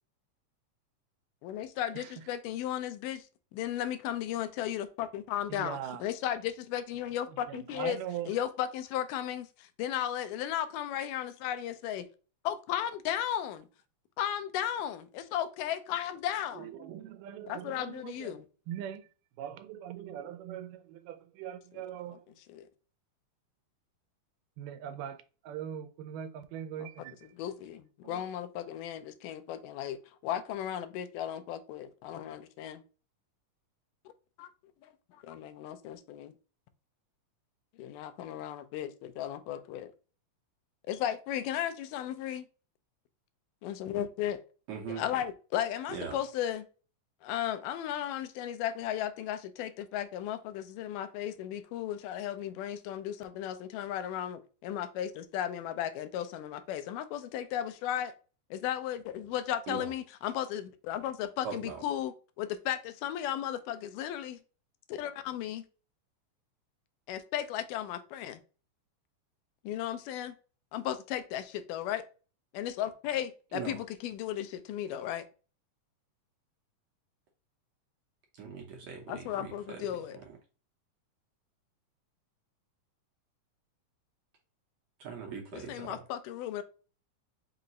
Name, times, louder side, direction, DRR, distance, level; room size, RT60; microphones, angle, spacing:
voice 1, 1.4-3.2 3.5-8.0 8.3-12.1 12.4-13.7 14.2-16.7 17.5-18.5 21.7-21.8 22.1-22.2 22.5-22.7 26.8-32.8 34.4-34.5 34.8-34.9 35.2-36.3 37.8-39.9 40.9-42.5 43.6-44.4 44.9-46.7 47.2-58.1 58.5-64.4 64.9-65.7 67.1-68.4 69.6-70.3 70.7-72.0 72.5-75.3 79.1-80.2 85.5-86.6, left 11 dB, 85° left, 2.2 m, -35 dB
voice 2, 5.5-6.0 7.5-8.3 16.6-18.3 18.7-19.0 19.4-22.2 24.6-25.2 25.5-27.2 28.0-28.2, right 10 dB, 90° right, 2.2 m, -41 dB
voice 3, 44.7-45.0 45.9-46.2 59.7-59.9 61.4-61.8 73.5-73.8 78.4-79.8 85.0-86.0, right 6 dB, 70° right, 1.7 m, -40 dB
5.5 x 2.0 x 3.7 m
omnidirectional pair, 3.7 m